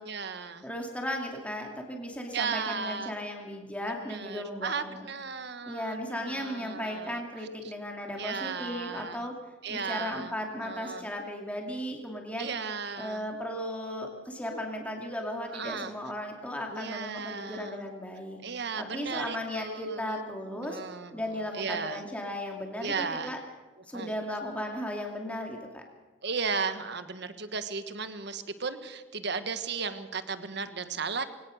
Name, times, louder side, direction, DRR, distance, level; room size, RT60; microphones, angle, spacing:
voice 1, 0.0-0.7 2.3-3.1 3.9-7.2 8.2-9.2 9.6-10.3 10.6-11.1 12.4-13.2 15.5-15.9 16.7-17.9 18.4-20.2 20.5-21.2 21.5-22.0 22.8-23.3 23.9-24.1 26.2-31.2, right 5 dB, 60° right, 10 dB, 1.4 m, -35 dB
voice 2, 0.6-5.1 5.7-9.3 9.7-12.5 13.0-18.4 18.8-20.8 21.1-23.4 23.9-25.8, left 1 dB, 5° left, 1 dB, 2.5 m, -36 dB
22.5 x 18.0 x 6.5 m, 1.3 s
head